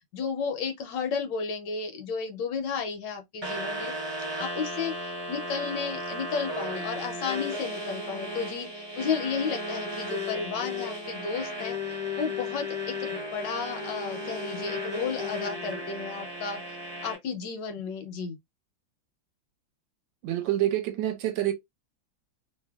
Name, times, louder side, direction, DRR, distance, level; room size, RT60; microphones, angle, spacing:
voice 1, 0.1-3.9 4.4-4.9 5.3-11.8 12.2-16.6 17.0-18.4, left 5 dB, 75° left, 1.1 m, -33 dB
sound 1, 3.4-17.2, left 1 dB, 45° right, 0.3 m, -35 dB
voice 2, 20.2-21.5, right 13 dB, 75° right, 1.3 m, -27 dB
3.2 x 2.1 x 2.2 m
omnidirectional pair, 2.1 m